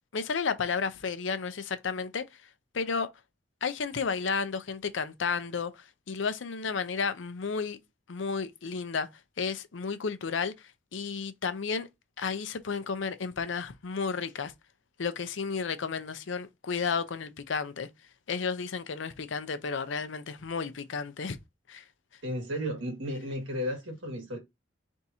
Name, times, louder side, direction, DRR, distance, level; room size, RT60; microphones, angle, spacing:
voice 1, 0.1-2.2 2.7-3.1 3.6-7.8 8.1-9.1 9.4-11.9 12.2-14.5 15.0-17.9 18.3-21.4 21.7-21.8, left 5 dB, 80° left, 0.6 m, -32 dB
voice 2, 22.2-24.4, equal, 90° right, 1.8 m, -33 dB
3.5 x 2.7 x 4.2 m
head